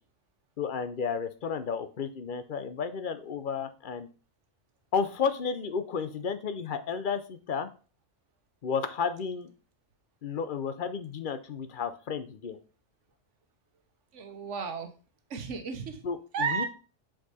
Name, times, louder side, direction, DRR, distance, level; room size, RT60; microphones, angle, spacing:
voice 1, 0.6-4.1 4.9-7.7 8.6-9.5 10.2-12.6 16.0-16.7, left 6 dB, 50° left, 11 dB, 0.8 m, -32 dB
voice 2, 14.1-14.9 15.3-16.0 16.3-16.7, right 5 dB, 85° right, 7 dB, 1.3 m, -33 dB
6.2 x 5.0 x 4.1 m, 0.36 s
omnidirectional pair, 1.2 m